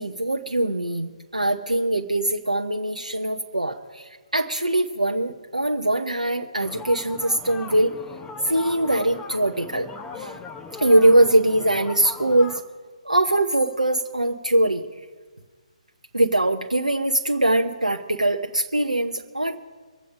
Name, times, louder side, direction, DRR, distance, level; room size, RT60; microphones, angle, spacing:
voice 1, 0.0-7.9 8.5-9.9 10.2-10.4 10.8-12.6 13.0-14.8 16.1-19.6, right 1 dB, 80° right, 3 dB, 0.9 m, -22 dB
sound 1, 6.6-12.6, left 5 dB, 10° left, 0.9 m, -39 dB
23.5 x 8.5 x 5.1 m, 1.5 s
figure-of-eight pair, 135°, 4 cm